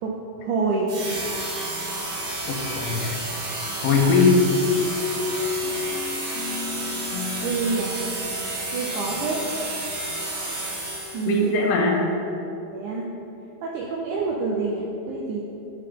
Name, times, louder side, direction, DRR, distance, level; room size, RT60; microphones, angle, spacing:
voice 1, 0.0-0.9 7.4-7.9 8.7-9.5 11.1-11.5 12.7-13.1 13.6-15.5, right 4 dB, 80° right, -2 dB, 1.8 m, -27 dB
sound 1, 0.9-11.4, right 2 dB, 60° right, 2.1 m, -31 dB
voice 2, 2.5-3.1 3.8-4.4 11.3-12.1, left 4 dB, 70° left, -1 dB, 2.4 m, -20 dB
sound 2, 4.9-9.6, left 5 dB, 90° left, 1.7 m, -34 dB
10.0 x 5.2 x 3.6 m, 2.9 s
omnidirectional pair, 4.2 m